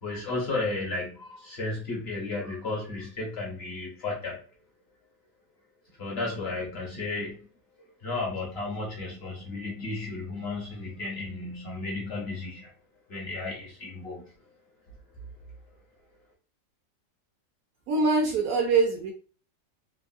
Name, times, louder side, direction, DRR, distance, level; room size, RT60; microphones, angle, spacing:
voice 1, 0.0-4.4 6.0-7.4 8.0-12.7 13.1-14.3, left 3 dB, 55° left, -2 dB, 0.7 m, -33 dB
voice 2, 17.9-19.1, right 4 dB, 70° right, 2 dB, 0.9 m, -23 dB
3.4 x 2.0 x 2.4 m, 0.40 s
omnidirectional pair, 1.9 m